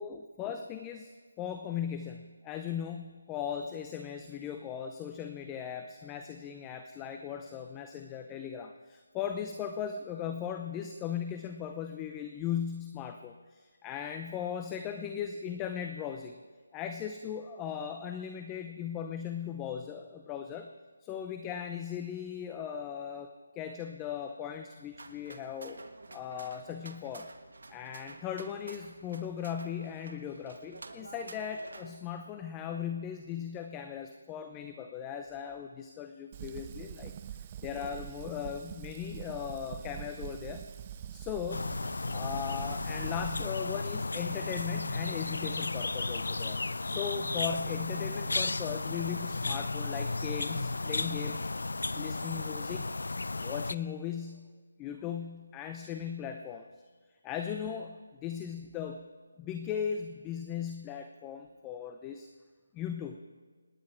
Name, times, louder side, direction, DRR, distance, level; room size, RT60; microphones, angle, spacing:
voice 1, 0.0-16.4 16.7-20.7 21.0-25.8 26.1-27.3 27.7-37.1 37.6-40.7 41.1-41.8 42.1-46.6 46.9-51.5 51.9-52.9 53.4-54.5 54.8-56.7 57.2-59.1 59.4-62.3 62.7-63.2, left 8 dB, 15° left, 6 dB, 0.7 m, -38 dB
sound 1, 24.9-32.0, right 3 dB, 70° right, 1.5 m, -50 dB
Fire, 36.3-43.5, right 10 dB, 30° right, 0.4 m, -44 dB
sound 2, 41.5-53.8, left 3 dB, 75° left, 0.5 m, -34 dB
27.5 x 10.0 x 4.5 m, 1.4 s
figure-of-eight pair, 160°, 0 cm